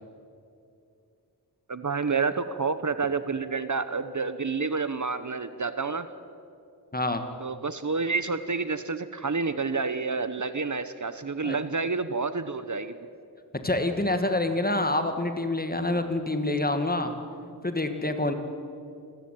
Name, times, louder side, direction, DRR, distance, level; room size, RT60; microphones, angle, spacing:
voice 1, 1.7-6.1 7.4-13.0, right 4 dB, 50° right, 12 dB, 1.0 m, -29 dB
voice 2, 6.9-7.2 11.4-11.6 13.6-17.2 17.6-18.3, left 2 dB, 25° left, 7 dB, 2.0 m, -27 dB
28.0 x 14.5 x 9.2 m, 2.5 s
wide cardioid pair, 85°, 40 cm